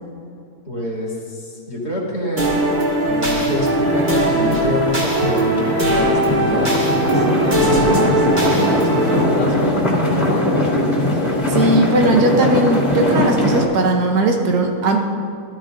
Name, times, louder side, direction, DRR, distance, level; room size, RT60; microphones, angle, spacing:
voice 1, 0.7-2.5 3.0-10.7, left 1 dB, 90° left, -5 dB, 3.0 m, -26 dB
sound 1, 2.4-9.2, right 1 dB, 30° right, 2.0 m, -19 dB
sound 2, 3.0-13.6, left 1 dB, 25° left, 2.4 m, -21 dB
voice 2, 11.5-15.0, right 2 dB, 80° right, 2 dB, 1.4 m, -17 dB
13.5 x 13.5 x 2.6 m, 2.4 s
omnidirectional pair, 1.7 m